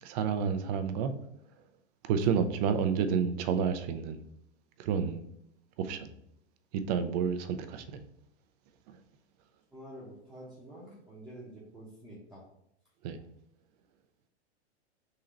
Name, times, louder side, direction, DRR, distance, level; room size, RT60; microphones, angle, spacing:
voice 1, 0.0-1.1 2.0-4.2 4.8-5.2 5.8-6.1 6.7-8.0 13.0-13.2, right 7 dB, 35° right, 9 dB, 0.4 m, -30 dB
voice 2, 9.7-12.5, right 1 dB, ahead, -9 dB, 0.9 m, -48 dB
3.8 x 2.8 x 4.2 m, 0.76 s
hypercardioid pair, 125°, 34 cm